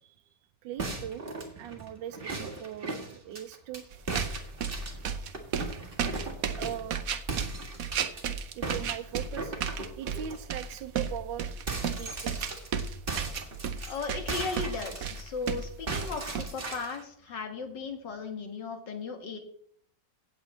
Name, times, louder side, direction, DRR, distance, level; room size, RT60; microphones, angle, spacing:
voice 1, 0.0-1.2 1.6-3.9 6.6-7.1 8.5-9.5 10.0-11.5 11.9-12.6, right 10 dB, 90° right, 8 dB, 1.3 m, -40 dB
sound 1, 0.8-3.8 4.1-6.9 7.3-8.2 8.6-10.4 10.8-10.9 11.2-15.5 15.9-17.0, right 3 dB, 30° right, 2.1 m, -38 dB
sound 2, 3.9-16.4, right 7 dB, 60° right, 1.1 m, -33 dB
voice 2, 13.9-19.4, left 4 dB, 75° left, 5 dB, 2.3 m, -36 dB
16.5 x 8.1 x 3.2 m, 0.63 s
omnidirectional pair, 1.9 m